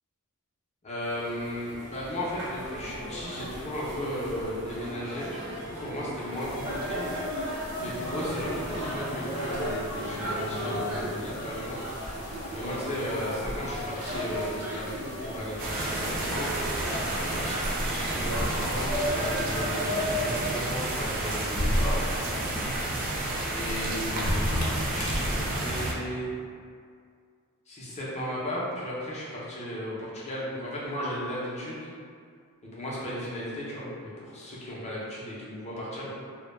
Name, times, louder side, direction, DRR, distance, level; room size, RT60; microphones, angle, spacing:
voice 1, 0.8-7.0 7.8-11.8 12.5-16.7 17.3-22.6 23.5-26.3 27.7-31.9 32.6-36.1, equal, 30° left, -7 dB, 0.6 m, -35 dB
sound 1, 1.0-20.6, equal, 75° right, 0.7 m, -35 dB
sound 2, 6.4-25.7, equal, 75° left, 0.5 m, -36 dB
sound 3, 15.6-25.9, right 1 dB, 40° right, 0.3 m, -31 dB
2.1 x 2.1 x 3.1 m, 2.2 s
head